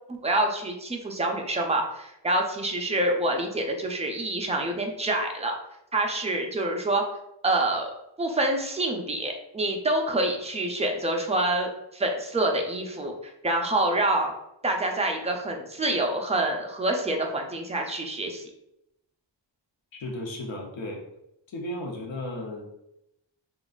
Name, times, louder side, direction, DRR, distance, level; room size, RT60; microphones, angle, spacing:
voice 1, 0.1-5.5 5.9-7.0 7.4-14.3 14.6-18.4, right 1 dB, 15° right, 2 dB, 0.4 m, -27 dB
voice 2, 19.9-21.0 21.5-22.8, left 1 dB, 85° left, 0 dB, 0.8 m, -35 dB
3.7 x 2.3 x 2.4 m, 0.83 s
wide cardioid pair, 110°, 44 cm